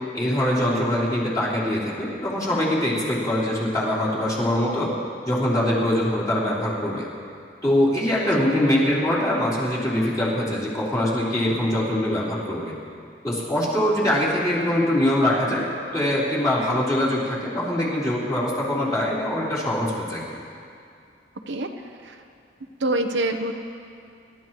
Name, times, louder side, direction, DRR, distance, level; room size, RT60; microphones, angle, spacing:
voice 1, 0.1-4.9 5.2-7.1 7.6-12.7 13.2-15.7 15.9-20.4, left 1 dB, 20° left, -8 dB, 3.6 m, -23 dB
voice 2, 22.8-23.5, right 1 dB, 80° right, 4 dB, 1.0 m, -25 dB
27.0 x 13.0 x 3.1 m, 2.4 s
head